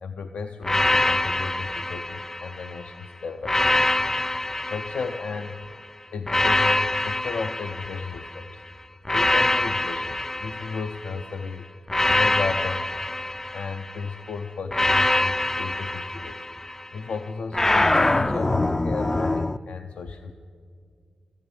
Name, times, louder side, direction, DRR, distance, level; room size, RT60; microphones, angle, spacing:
voice 1, 0.0-3.8 4.6-5.6 6.1-8.6 9.1-11.7 12.1-12.9 13.5-16.4 16.9-20.3, left 5 dB, 75° left, 6 dB, 0.5 m, -34 dB
sound 1, 0.6-2.8 3.4-5.6 6.3-8.4 9.0-11.2 11.9-14.0 14.7-16.9 17.5-19.6, left 2 dB, 20° left, 0.3 m, -24 dB
13.0 x 10.0 x 8.9 m, 2.2 s
cardioid pair, 55°, 2 cm